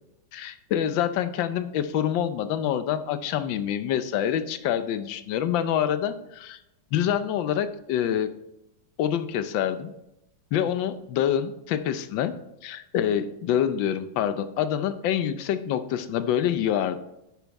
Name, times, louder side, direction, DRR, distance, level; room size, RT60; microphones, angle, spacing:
voice 1, 0.3-6.6 6.9-8.3 9.0-9.9 10.5-12.3 12.6-17.0, left 10 dB, 75° left, 11 dB, 1.4 m, -26 dB
11.0 x 6.9 x 4.1 m, 0.86 s
omnidirectional pair, 2.1 m